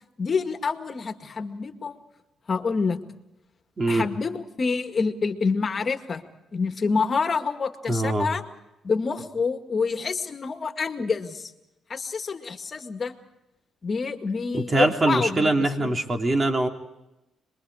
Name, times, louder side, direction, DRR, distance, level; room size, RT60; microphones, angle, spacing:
voice 1, 0.2-2.0 2.5-3.0 3.9-6.2 6.5-8.4 8.8-11.5 11.9-13.1 13.8-15.5 15.8-16.0, left 4 dB, 40° left, 6 dB, 2.0 m, -27 dB
voice 2, 3.8-4.1 7.9-8.3 14.5-16.7, right 2 dB, 30° right, 3 dB, 3.3 m, -23 dB
26.5 x 22.0 x 5.0 m, 0.94 s
cardioid pair, 90°, 0 cm